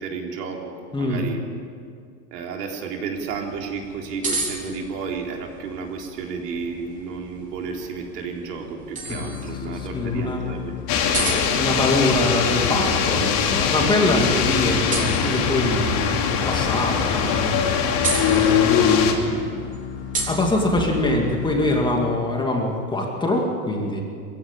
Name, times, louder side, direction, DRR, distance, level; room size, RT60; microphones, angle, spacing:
voice 1, 0.0-1.4 2.3-11.4 13.2-13.4, right 5 dB, 75° right, 1 dB, 4.0 m, -32 dB
voice 2, 0.9-1.2 9.9-10.4 11.6-19.6 20.3-24.0, left 1 dB, 10° left, 0 dB, 2.3 m, -24 dB
sound 1, 3.1-22.0, right 3 dB, 15° right, 3.6 m, -35 dB
sound 2, 9.0-22.5, left 10 dB, 25° left, 1.0 m, -35 dB
sound 3, 10.9-19.1, left 7 dB, 40° left, 2.9 m, -21 dB
22.0 x 15.5 x 9.0 m, 2.2 s
supercardioid pair, 150°, 47 cm